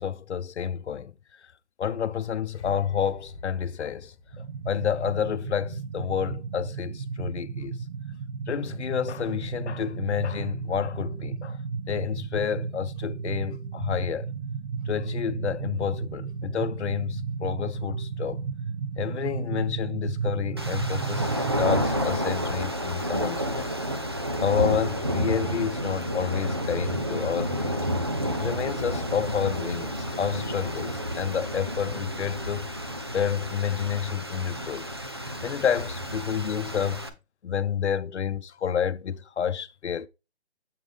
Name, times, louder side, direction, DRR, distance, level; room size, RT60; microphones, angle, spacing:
voice 1, 0.0-1.4 1.8-7.8 8.5-11.6 11.9-14.3 14.9-18.4 19.0-23.7 24.4-34.9 35.4-37.1 37.4-40.1, left 8 dB, 85° left, 0.7 m, -30 dB
sound 1, 2.5-5.7 6.0-6.3, left 1 dB, 30° left, 2.1 m, -44 dB
sound 2, 4.3-21.8, right 5 dB, 65° right, 1.0 m, -34 dB
sound 3, 20.6-37.1, equal, 25° right, 0.4 m, -30 dB
7.6 x 5.3 x 3.4 m
hypercardioid pair, 165°, 33 cm